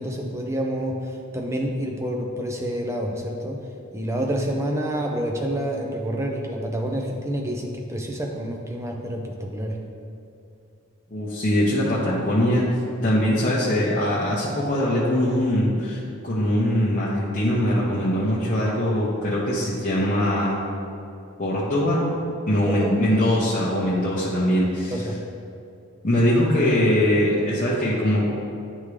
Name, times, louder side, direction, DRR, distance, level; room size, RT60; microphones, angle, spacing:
voice 1, 0.0-3.6 3.9-9.8 22.7-23.0 24.9-25.2, right 1 dB, 15° right, 1 dB, 0.5 m, -28 dB
voice 2, 11.1-12.6 13.0-20.6 21.4-22.1 22.5-24.9 26.0-28.2, left 1 dB, 35° left, -8 dB, 0.8 m, -22 dB
9.5 x 3.6 x 3.2 m, 2.6 s
head